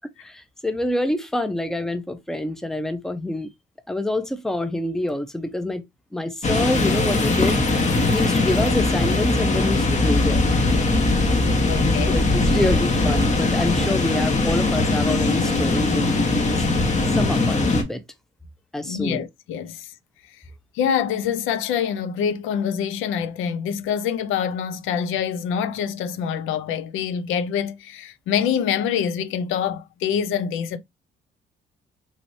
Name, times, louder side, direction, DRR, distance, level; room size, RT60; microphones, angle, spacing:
voice 1, 0.2-3.5 3.9-5.8 6.1-10.4 12.1-16.7 17.2-18.0 18.7-19.2, left 1 dB, ahead, 0.5 m, -27 dB
sound 1, 6.4-17.8, left 2 dB, 35° left, 1.0 m, -20 dB
voice 2, 11.6-12.2 18.9-19.9 20.7-30.8, left 8 dB, 85° left, 0.5 m, -25 dB
3.1 x 3.0 x 2.6 m
cardioid pair, 90°, 20 cm